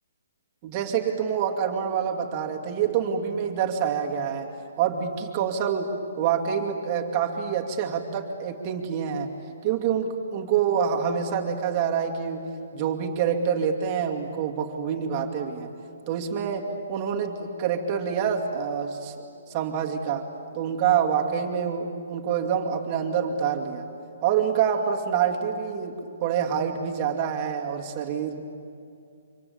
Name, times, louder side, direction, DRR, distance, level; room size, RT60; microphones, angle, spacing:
voice 1, 0.6-9.3 9.6-15.7 16.1-19.1 19.5-20.3 20.5-23.9 24.2-28.4, right 7 dB, 25° right, 0 dB, 2.5 m, -26 dB
29.5 x 25.5 x 7.3 m, 2.4 s
hypercardioid pair, 165°, 0 cm